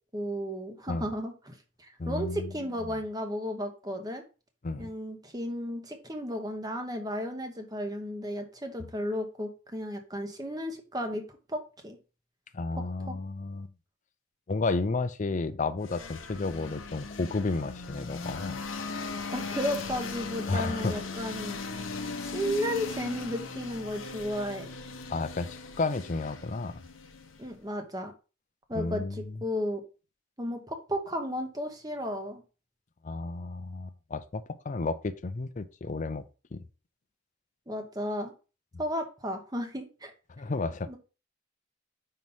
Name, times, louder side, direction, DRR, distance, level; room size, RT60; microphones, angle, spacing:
voice 1, 0.1-4.2 4.8-11.2 11.5-12.0 13.1-13.2 19.3-21.6 22.2-24.7 27.4-28.1 28.7-29.8 30.4-32.4 37.7-38.3 38.8-40.1 40.9-41.0, equal, 20° right, 1.0 m, -34 dB
voice 2, 2.0-2.5 4.6-4.9 12.5-13.7 14.5-18.6 20.5-21.0 25.1-26.7 28.7-29.3 33.0-36.2 36.5-36.6 40.4-41.0, left 3 dB, 40° left, 0.5 m, -32 dB
sound 1, 15.8-27.6, left 4 dB, 80° left, 0.8 m, -38 dB
5.5 x 3.1 x 5.5 m
head